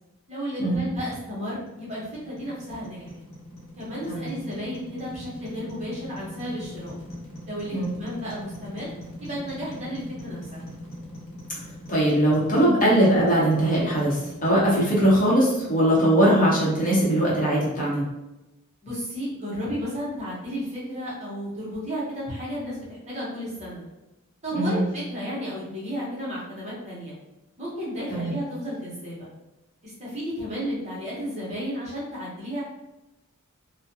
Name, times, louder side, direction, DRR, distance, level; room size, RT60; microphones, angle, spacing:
voice 1, 0.3-3.1 3.8-6.9 7.5-8.9 9.2-10.6 18.8-23.8 24.4-27.1 27.6-29.3 29.8-32.6, equal, 30° right, -6 dB, 0.9 m, -33 dB
sound 1, 1.4-16.4, left 1 dB, 70° left, 1.0 m, -42 dB
voice 2, 11.9-18.1 24.5-24.8 28.1-28.3, right 1 dB, 40° left, -6 dB, 0.9 m, -21 dB
2.4 x 2.1 x 2.7 m, 0.96 s
head